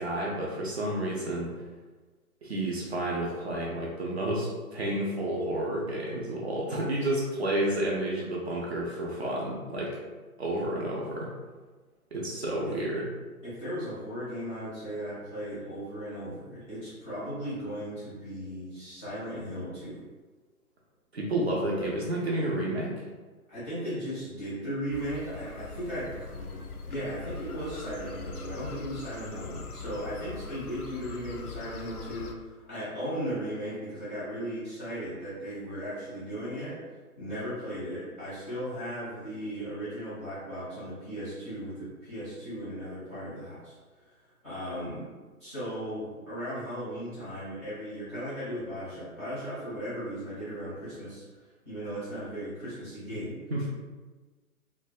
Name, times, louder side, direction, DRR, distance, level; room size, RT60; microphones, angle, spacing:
voice 1, 0.0-1.5 2.4-9.9 10.4-11.3 12.1-13.1 21.1-23.0 53.5-53.7, right 1 dB, 45° right, -4 dB, 0.5 m, -30 dB
voice 2, 13.4-20.0 23.5-36.8 37.2-45.1 45.4-51.2 51.6-53.3, equal, 10° left, -13 dB, 0.6 m, -37 dB
sound 1, 24.9-32.3, left 4 dB, 80° left, 0.5 m, -42 dB
2.5 x 2.2 x 2.3 m, 1.3 s
figure-of-eight pair, 135°, 44 cm